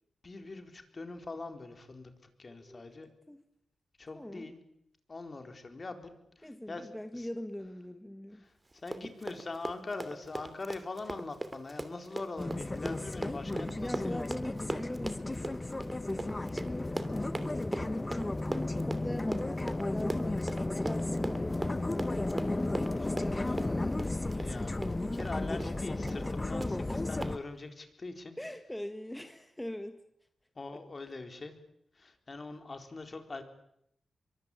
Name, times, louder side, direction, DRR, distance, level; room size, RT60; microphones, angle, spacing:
voice 1, 0.2-2.1 2.4-3.1 4.0-4.6 5.1-7.3 8.3-14.3 24.3-28.3 30.5-31.6 31.9-33.4, left 3 dB, 45° left, 6 dB, 4.2 m, -43 dB
voice 2, 4.1-4.5 6.4-8.4 13.8-18.4 18.8-24.1 26.9-27.1 28.4-30.0 30.7-30.8, left 1 dB, 10° left, 7 dB, 2.0 m, -42 dB
Run, 8.7-25.4 25.6-25.8 26.1-26.3 26.6-26.7 27.2-27.3, right 2 dB, 25° right, 2.9 m, -40 dB
sound 1, 12.4-27.4, left 2 dB, 25° left, 1.3 m, -34 dB
23.5 x 23.0 x 8.6 m, 0.76 s
cardioid pair, 55°, 0 cm